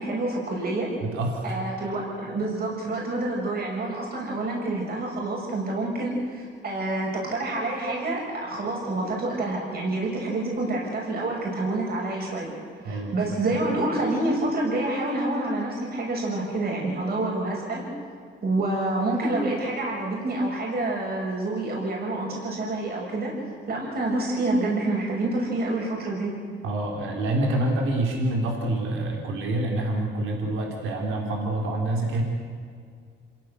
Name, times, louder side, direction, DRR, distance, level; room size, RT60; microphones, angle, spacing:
voice 1, 0.0-0.9 1.4-12.5 12.8-17.8 18.4-23.3 23.7-26.3, right 2 dB, 50° right, -1 dB, 7.2 m, -27 dB
voice 2, 1.0-1.6 12.8-13.4 26.6-32.2, right 1 dB, 85° right, 1 dB, 3.9 m, -27 dB
27.5 x 16.5 x 8.2 m, 2.1 s
cardioid pair, 90°, 20 cm